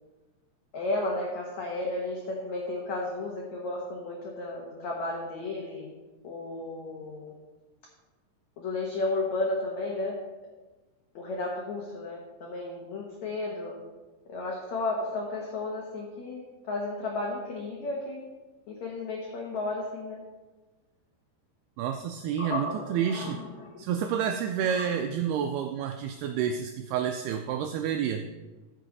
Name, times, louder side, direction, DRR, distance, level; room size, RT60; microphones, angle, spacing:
voice 1, 0.7-5.9 6.2-7.3 8.6-10.2 11.1-13.8 14.3-18.3 18.7-20.2 22.4-23.9 24.7-24.9, left 2 dB, 90° left, -1 dB, 1.6 m, -33 dB
voice 2, 21.8-23.4 23.8-28.2, right 8 dB, 85° right, 6 dB, 2.2 m, -29 dB
14.0 x 6.6 x 4.0 m, 1.2 s
omnidirectional pair, 5.1 m